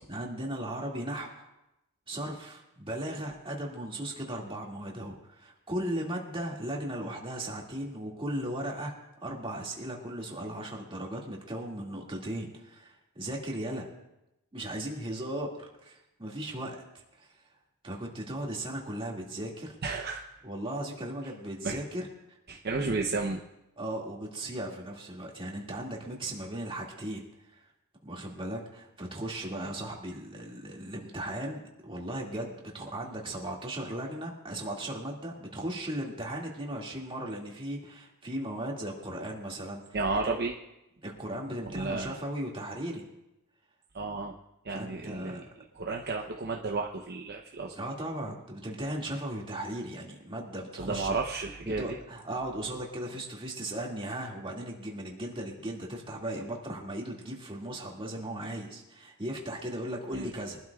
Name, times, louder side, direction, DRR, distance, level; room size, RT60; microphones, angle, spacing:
voice 1, 0.1-1.5 2.1-13.9 14.5-16.8 17.2-17.3 17.8-19.8 20.4-22.4 22.7-22.9 23.8-27.2 27.5-27.7 28.0-39.8 40.3-40.4 41.0-43.0 44.7-45.5 47.8-51.2 51.8-60.6, right 1 dB, 25° right, -2 dB, 2.2 m, -37 dB
voice 2, 19.8-20.2 21.6-21.8 22.5-23.4 39.9-40.5 41.6-42.2 43.9-44.4 44.6-45.4 45.7-47.8 50.8-52.0 60.1-60.3, right 3 dB, 50° right, 1 dB, 0.8 m, -32 dB
23.0 x 12.5 x 2.4 m, 0.91 s
head